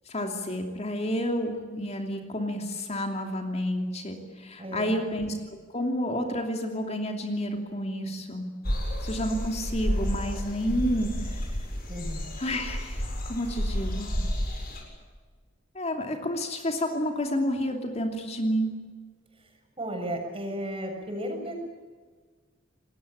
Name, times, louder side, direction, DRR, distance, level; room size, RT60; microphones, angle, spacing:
voice 1, 0.1-5.4 5.7-8.5 9.0-11.5 12.4-14.2 15.7-18.7, equal, 35° left, 4 dB, 2.9 m, -30 dB
voice 2, 4.6-5.0 11.9-12.3 19.8-21.6, equal, 30° right, 3 dB, 7.0 m, -34 dB
sound 1, 8.7-14.8, equal, 55° left, 7.7 m, -31 dB
28.0 x 21.0 x 8.7 m, 1.5 s
head